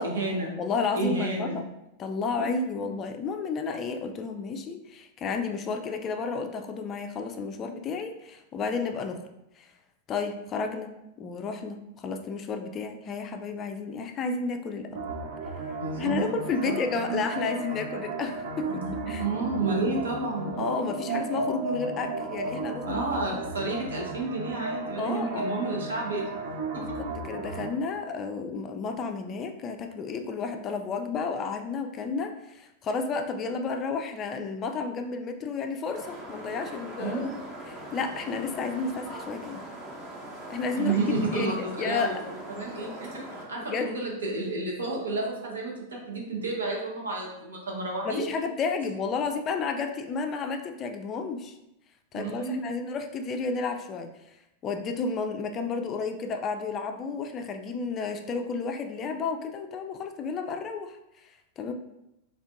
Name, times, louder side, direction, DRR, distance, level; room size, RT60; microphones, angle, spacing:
voice 1, 0.0-0.5 0.9-1.6 2.4-2.5 2.8-2.9 15.8-16.3 16.6-16.7 18.7-20.9 22.9-26.2 26.7-27.0 37.0-37.3 40.8-48.3 52.1-52.6, right 3 dB, 75° right, -1 dB, 0.8 m, -31 dB
voice 2, 0.6-1.7 2.0-9.2 9.6-9.7 10.1-15.0 16.0-18.7 19.1-19.2 20.6-23.0 23.3-23.4 25.0-25.6 26.8-37.3 37.7-39.6 40.5-42.2 43.6-43.9 48.0-51.6 52.1-54.1 54.6-61.0 61.6-61.7, left 4 dB, 30° left, 6 dB, 0.3 m, -32 dB
sound 1, 14.9-27.7, right 3 dB, 60° right, 0.4 m, -34 dB
sound 2, 35.9-43.4, right 1 dB, 30° right, 0.9 m, -41 dB
3.5 x 2.5 x 2.5 m, 0.87 s
figure-of-eight pair, 90°, 0 cm